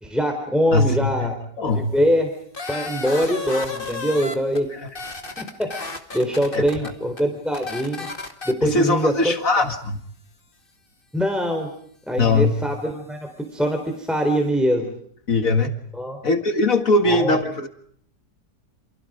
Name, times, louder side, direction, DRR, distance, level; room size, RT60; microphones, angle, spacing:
voice 1, 0.0-1.3 1.8-2.3 2.7-4.7 5.4-5.7 6.1-8.1 8.5-9.1 11.1-11.7 12.1-14.9 16.0-16.2 17.0-17.4, equal, ahead, 4 dB, 3.9 m, -23 dB
voice 2, 0.7-1.9 4.7-4.9 6.5-6.9 8.6-10.0 12.2-12.5 15.3-15.8 16.2-17.7, left 2 dB, 55° left, 7 dB, 2.4 m, -21 dB
sound 1, 2.5-4.6 4.9-6.9 7.2-7.3 7.5-8.5, left 3 dB, 30° left, 2.5 m, -32 dB
29.0 x 28.5 x 5.1 m, 0.65 s
omnidirectional pair, 1.8 m